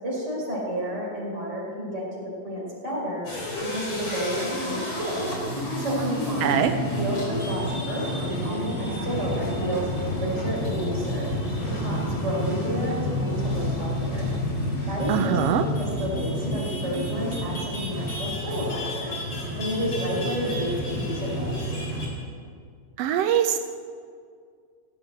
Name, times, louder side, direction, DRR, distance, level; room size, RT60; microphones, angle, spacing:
voice 1, 0.0-3.3 3.6-5.3 5.8-6.6 7.0-9.9 10.2-11.3 11.7-14.3 14.8-19.1 19.6-21.7, equal, 20° right, -6 dB, 5.4 m, -31 dB
sound 1, 3.2-22.2, equal, 40° left, 4.4 m, -29 dB
voice 2, 6.4-6.7 15.1-15.6 23.0-23.6, right 10 dB, 85° right, 8 dB, 1.4 m, -22 dB
18.0 x 8.2 x 7.8 m, 2.1 s
omnidirectional pair, 3.6 m